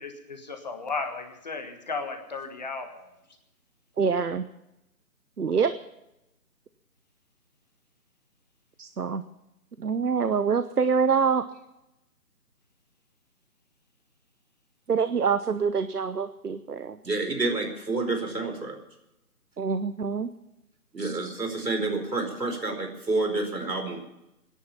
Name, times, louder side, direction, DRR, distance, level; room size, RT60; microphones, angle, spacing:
voice 1, 0.0-3.1, left 4 dB, 25° left, 5 dB, 1.5 m, -35 dB
voice 2, 4.0-4.4 5.4-5.7 8.8-9.2 9.8-11.5 14.9-17.0 19.6-20.3 21.0-21.2, right 5 dB, 70° right, 12 dB, 1.0 m, -25 dB
voice 3, 17.0-18.7 20.9-24.0, right 3 dB, 85° right, 4 dB, 5.0 m, -29 dB
22.5 x 10.5 x 5.7 m, 0.89 s
figure-of-eight pair, 160°, 48 cm